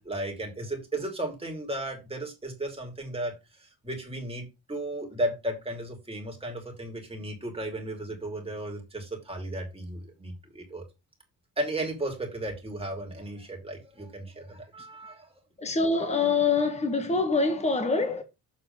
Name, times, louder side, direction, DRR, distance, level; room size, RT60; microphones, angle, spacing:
voice 1, 0.0-10.9 11.6-15.3, right 1 dB, 15° right, 2.7 m, -35 dB
voice 2, 15.6-18.2, left 4 dB, 15° left, 1.4 m, -25 dB
7.5 x 4.2 x 5.3 m
cardioid pair, 130°, 40 cm